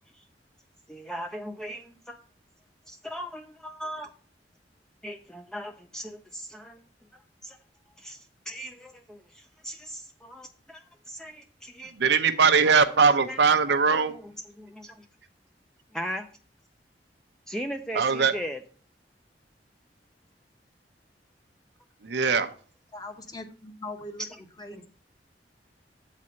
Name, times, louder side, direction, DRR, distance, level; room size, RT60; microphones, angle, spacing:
voice 1, 0.9-2.2 2.9-4.1 5.0-6.8 7.1-7.6 8.0-11.9 12.8-13.4 13.7-15.1 15.9-16.3 17.5-18.6 24.2-24.3 24.7-24.8, equal, 5° left, 0.4 m, -39 dB
voice 2, 12.0-14.1 17.9-18.3 22.0-22.5, right 5 dB, 70° right, 0.6 m, -21 dB
voice 3, 22.9-24.3 24.6-24.9, left 2 dB, 25° left, 0.9 m, -40 dB
7.5 x 4.2 x 6.2 m
head